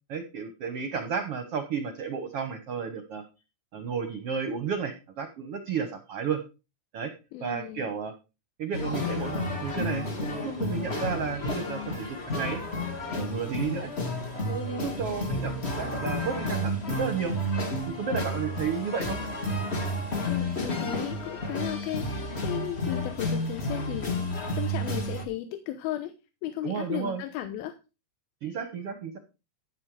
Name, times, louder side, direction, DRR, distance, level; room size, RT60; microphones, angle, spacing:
voice 1, 0.1-3.2 3.7-6.4 6.9-7.1 7.4-8.1 8.6-12.6 13.1-13.9 14.3-17.3 17.9-19.2 26.6-27.2 28.4-29.2, right 6 dB, 70° right, 8 dB, 1.4 m, -32 dB
voice 2, 7.3-7.9 20.3-26.1 26.4-27.7, left 12 dB, 75° left, 8 dB, 2.8 m, -35 dB
sound 1, 8.7-25.2, left 1 dB, 40° left, 0.9 m, -31 dB
15.0 x 6.7 x 4.8 m, 0.30 s
omnidirectional pair, 4.5 m